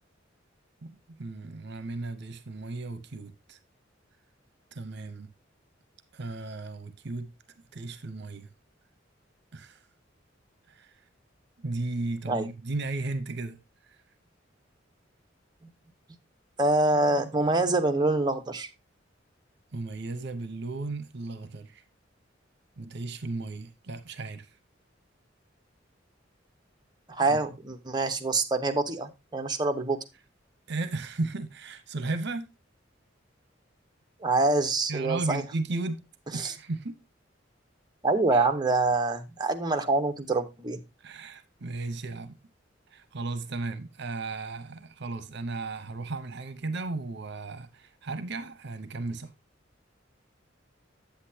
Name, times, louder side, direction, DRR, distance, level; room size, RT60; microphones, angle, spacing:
voice 1, 0.8-3.6 4.7-5.3 6.1-7.3 7.7-8.5 9.5-9.8 10.7-11.0 11.6-13.6 13.9-14.0 19.7-21.8 22.8-24.5 27.3-27.4 30.7-32.4 34.9-36.0 36.3-37.0 38.3-38.5 41.0-42.3 42.9-49.3, right 3 dB, 65° right, 0.8 m, -35 dB
voice 2, 16.6-18.7 27.1-30.0 34.2-35.4 36.3-36.5 38.0-40.8, right 2 dB, 25° right, 0.9 m, -25 dB
8.4 x 8.2 x 2.7 m
head